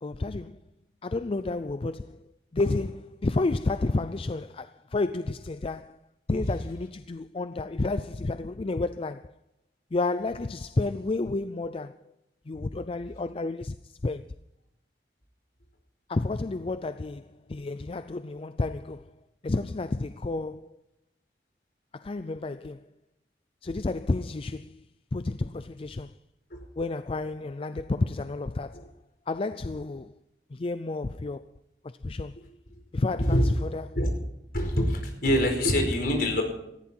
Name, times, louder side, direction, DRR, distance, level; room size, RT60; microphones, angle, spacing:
voice 1, 0.0-0.6 1.0-2.2 2.5-6.0 6.3-9.3 9.9-12.0 12.5-14.2 16.1-19.1 19.4-20.8 21.9-22.8 23.6-24.9 25.1-26.1 26.8-28.9 29.3-30.1 30.5-31.4 32.0-32.4 32.9-34.0, left 2 dB, 30° left, 0.4 m, -31 dB
voice 2, 33.2-33.5 33.9-34.1 34.5-36.4, equal, 60° left, 4.8 m, -24 dB
19.0 x 15.0 x 4.5 m
head